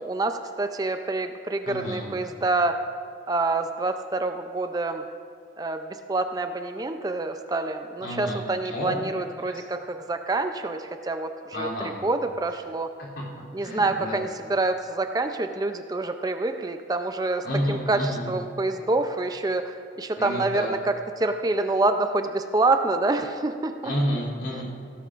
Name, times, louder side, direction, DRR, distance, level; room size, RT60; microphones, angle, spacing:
voice 1, 0.0-2.8 3.3-5.0 5.6-11.7 12.0-12.9 13.5-23.9, right 2 dB, 20° right, 7 dB, 0.4 m, -27 dB
voice 2, 1.7-2.0 8.0-8.4 8.7-9.0 11.5-11.9 13.6-14.2 17.4-18.3 20.1-20.8 23.8-24.6, equal, 80° left, -7 dB, 3.1 m, -29 dB
17.0 x 16.5 x 2.5 m, 2.3 s
head